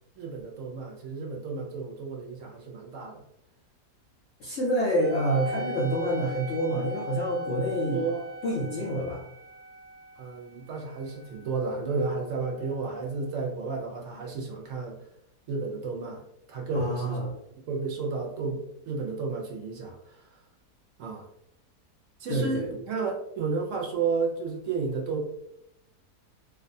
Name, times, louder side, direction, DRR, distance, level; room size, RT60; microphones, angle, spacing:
voice 1, 0.2-3.2 7.9-8.2 10.2-15.0 15.5-16.2 16.5-17.3 17.7-20.3 21.0-21.3 22.2-25.2, right 4 dB, 70° right, 0 dB, 0.8 m, -32 dB
voice 2, 4.4-8.0 8.4-9.2 16.7-17.3 22.3-22.7, equal, 70° left, -3 dB, 0.6 m, -27 dB
Wind instrument woodwind instrument, 5.0-13.9, right 3 dB, 25° right, 0.9 m, -41 dB
2.5 x 2.2 x 2.5 m, 0.77 s
omnidirectional pair, 1.7 m